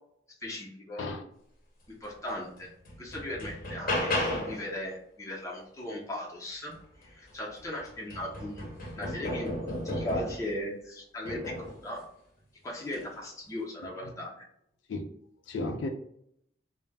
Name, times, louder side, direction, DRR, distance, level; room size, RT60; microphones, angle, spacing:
voice 1, 0.4-1.1 2.0-2.7 3.0-6.7 7.0-12.0 12.6-14.5, left 1 dB, 15° left, 0.6 m, -38 dB
sound 1, 2.3-2.4 2.9-4.7 7.0-7.1 7.6-10.5 11.3-11.8 12.8-13.1, left 1 dB, 50° left, 0.8 m, -34 dB
voice 2, 15.5-15.9, left 2 dB, 80° left, 0.4 m, -34 dB
2.1 x 2.1 x 3.3 m
head